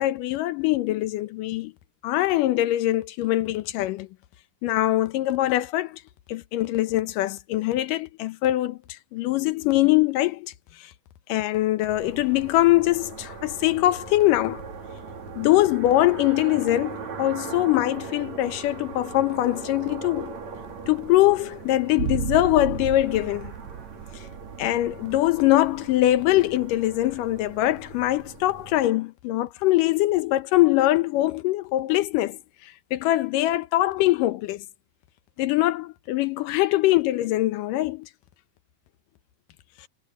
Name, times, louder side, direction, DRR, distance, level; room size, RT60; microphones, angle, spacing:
voice 1, 0.0-1.7 2.0-4.1 4.6-6.0 6.3-8.8 9.1-10.5 11.3-14.6 15.4-20.3 20.9-23.5 24.6-32.4 32.9-34.6 35.4-38.1, left 15 dB, 85° left, 2.5 m, -22 dB
sound 1, 11.9-28.8, right 5 dB, 60° right, 4.1 m, -40 dB
sound 2, 22.0-26.2 26.5-26.6, right 11 dB, 75° right, 1.6 m, -34 dB
omnidirectional pair, 3.7 m